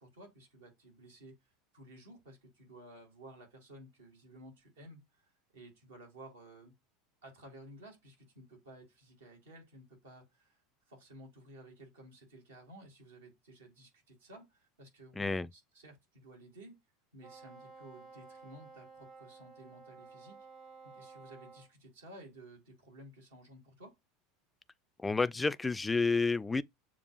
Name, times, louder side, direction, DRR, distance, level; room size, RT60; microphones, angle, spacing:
voice 1, 0.0-6.7 7.2-10.6 10.9-16.8 17.1-20.5 20.9-24.0, right 1 dB, 80° right, 1.8 m, -54 dB
voice 2, 15.2-15.5 25.0-26.6, left 3 dB, 15° left, 0.3 m, -30 dB
Wind instrument woodwind instrument, 17.2-21.7, right 4 dB, 55° right, 1.5 m, -54 dB
6.9 x 2.4 x 2.3 m
hypercardioid pair, 80°, 0 cm